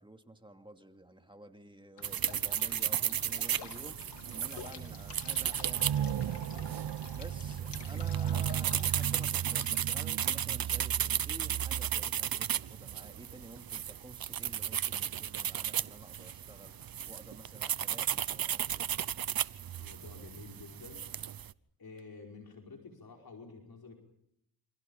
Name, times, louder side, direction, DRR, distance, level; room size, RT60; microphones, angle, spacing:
voice 1, 0.0-6.7 7.1-18.9, right 1 dB, 10° right, 5 dB, 2.6 m, -52 dB
sound 1, 2.0-9.8, left 7 dB, 75° left, 3.9 m, -50 dB
sound 2, 2.0-21.5, right 10 dB, 55° right, 0.9 m, -34 dB
sound 3, 5.6-9.3, right 9 dB, 75° right, 1.1 m, -38 dB
voice 2, 19.8-21.1 21.8-23.9, left 4 dB, 55° left, 2 dB, 5.1 m, -50 dB
28.5 x 27.0 x 5.5 m, 0.75 s
cardioid pair, 85°, 42 cm